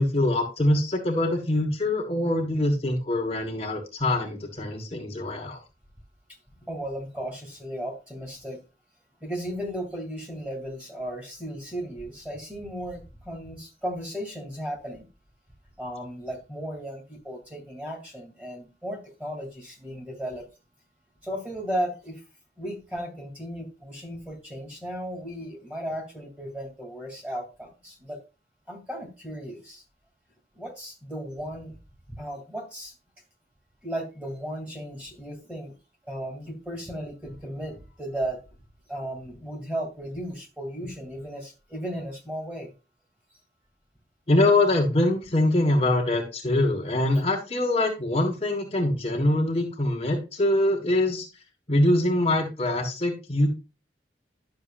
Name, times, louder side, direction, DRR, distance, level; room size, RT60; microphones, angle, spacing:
voice 1, 0.0-5.6 44.3-51.3 51.7-53.5, left 1 dB, 35° left, 0 dB, 1.5 m, -24 dB
voice 2, 6.6-8.6 9.2-15.1 15.8-20.5 21.2-22.2 22.6-28.2 28.7-29.8 30.5-31.8 32.2-32.9 33.8-35.7 36.0-38.4 38.9-42.7, equal, 10° right, -2 dB, 2.7 m, -35 dB
11.5 x 6.7 x 2.5 m, 0.29 s
head